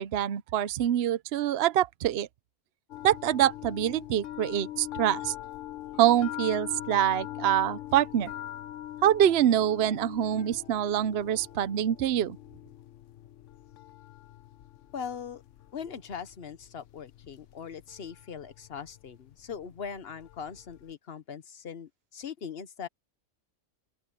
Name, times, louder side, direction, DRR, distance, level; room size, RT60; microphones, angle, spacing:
voice 1, 0.0-2.3 3.0-5.3 6.0-8.3 9.0-12.4, right 11 dB, 65° right, 0.9 m, -25 dB
sound 1, 2.9-20.9, left 13 dB, 80° left, 1.1 m, -43 dB
voice 2, 14.9-15.4 15.7-22.9, left 7 dB, 55° left, 1.2 m, -40 dB
open air
omnidirectional pair, 1.3 m